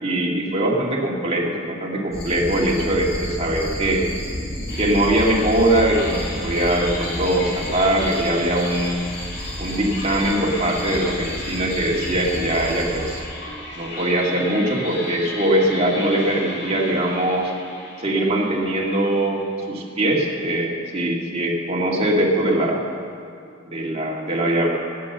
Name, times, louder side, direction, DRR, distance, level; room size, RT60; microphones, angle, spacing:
voice 1, 0.0-4.0 4.8-9.1 9.6-13.2 13.8-17.5 18.0-22.9 23.7-24.7, right 1 dB, 35° right, -2 dB, 2.2 m, -21 dB
sound 1, 2.1-13.2, equal, 35° left, 2.8 m, -32 dB
sound 2, 4.7-19.9, left 2 dB, 65° left, 3.4 m, -35 dB
18.5 x 8.6 x 6.8 m, 2.4 s
head